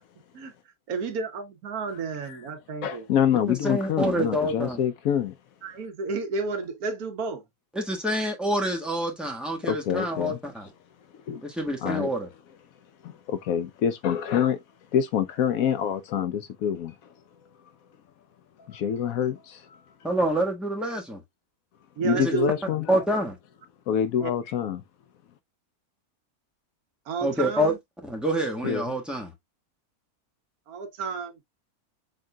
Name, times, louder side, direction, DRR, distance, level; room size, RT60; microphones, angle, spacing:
voice 1, 0.9-3.1 5.6-7.4 22.0-22.5 24.2-24.3 27.1-27.8 30.7-31.4, right 5 dB, 80° right, 1.4 m, -31 dB
voice 2, 2.8-5.3 9.6-10.4 11.3-11.4 11.8-12.1 13.0-14.6 14.9-16.9 18.7-19.6 22.0-23.0 23.9-24.8 28.6-28.9, left 9 dB, 75° left, 1.0 m, -26 dB
voice 3, 3.5-4.8 7.7-10.7 11.4-12.3 20.0-21.2 22.1-22.3 22.9-23.3 27.2-27.7 28.0-29.3, right 1 dB, ahead, 1.2 m, -27 dB
6.4 x 3.7 x 2.2 m
omnidirectional pair, 1.6 m